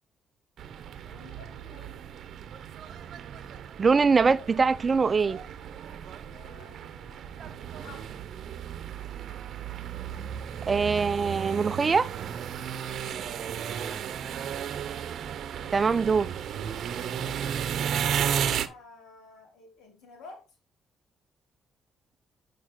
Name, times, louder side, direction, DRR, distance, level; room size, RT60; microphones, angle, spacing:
sound 1, 0.6-18.7, right 8 dB, 70° right, 0.8 m, -34 dB
voice 1, 1.0-2.1 6.2-8.2 13.2-14.0 17.9-20.5, left 3 dB, 80° left, 3.7 m, -52 dB
voice 2, 3.8-5.4 10.7-12.1 15.7-16.3, right 5 dB, 35° right, 0.5 m, -23 dB
8.8 x 5.4 x 3.9 m
cardioid pair, 90°, 0 cm